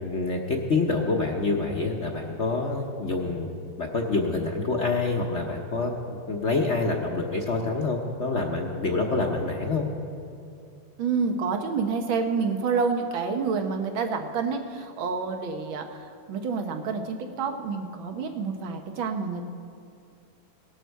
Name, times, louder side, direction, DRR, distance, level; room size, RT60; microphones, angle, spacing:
voice 1, 0.0-3.5 3.8-9.8, left 3 dB, 50° left, 1 dB, 0.9 m, -27 dB
voice 2, 11.0-19.5, right 5 dB, 80° right, 5 dB, 1.8 m, -28 dB
18.5 x 11.5 x 4.6 m, 2.5 s
omnidirectional pair, 2.2 m